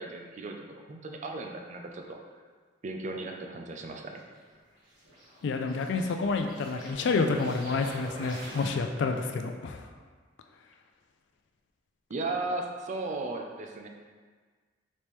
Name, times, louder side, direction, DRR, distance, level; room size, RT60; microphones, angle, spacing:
voice 1, 0.0-2.2 2.8-4.2 12.1-13.9, right 2 dB, 40° right, 2 dB, 0.4 m, -36 dB
sound 1, 4.2-9.2, equal, 70° right, 1.5 m, -47 dB
voice 2, 5.4-9.8, left 4 dB, 65° left, 5 dB, 0.4 m, -29 dB
4.1 x 3.5 x 3.1 m, 1.5 s
head